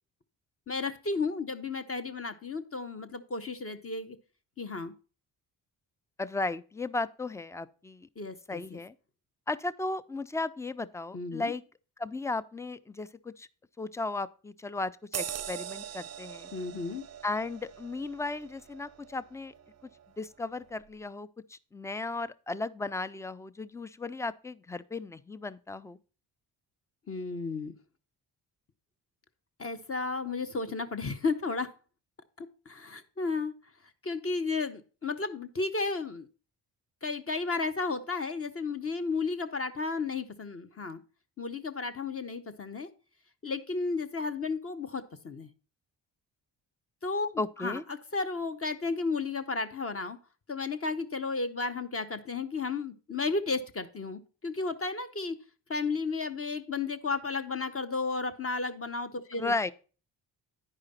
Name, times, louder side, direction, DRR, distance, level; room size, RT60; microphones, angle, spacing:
voice 1, 0.7-4.2 4.6-4.9 8.2-8.8 11.1-11.5 16.5-17.0 27.1-27.7 29.6-31.7 32.4-33.5 34.0-36.3 37.0-41.0 41.4-42.9 43.4-45.5 47.0-50.2 50.5-55.4 55.7-59.5, left 4 dB, 30° left, 0.8 m, -33 dB
voice 2, 6.2-8.1 8.5-8.9 9.5-11.6 12.0-13.5 13.8-16.5 17.2-19.5 20.2-26.0 47.4-47.8 59.4-59.7, left 3 dB, 5° left, 0.3 m, -35 dB
sound 1, 15.1-20.1 20.5-20.7, right 9 dB, 35° right, 0.6 m, -42 dB
9.8 x 4.9 x 4.2 m
supercardioid pair, 50°, 45 cm